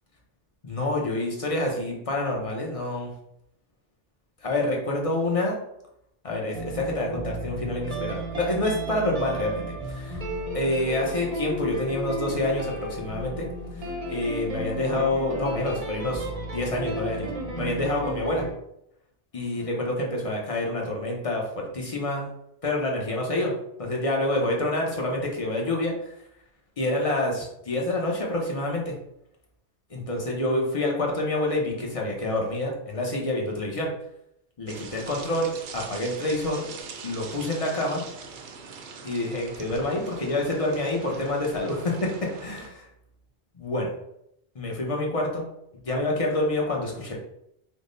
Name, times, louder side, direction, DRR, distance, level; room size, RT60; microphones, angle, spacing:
voice 1, 0.6-3.1 4.4-5.6 6.2-10.2 10.5-13.5 14.1-17.3 17.6-18.5 19.3-22.3 22.6-23.5 23.8-25.9 26.8-28.9 29.9-33.9 34.6-36.7 37.0-38.0 39.0-42.8 43.6-43.9 44.5-45.4 45.8-47.1, left 1 dB, 35° left, -1 dB, 0.7 m, -27 dB
sound 1, 6.5-18.5, right 1 dB, 40° right, 0.7 m, -33 dB
sound 2, 34.7-42.7, right 5 dB, 90° right, 0.9 m, -42 dB
3.6 x 2.1 x 3.8 m, 0.76 s
omnidirectional pair, 1.1 m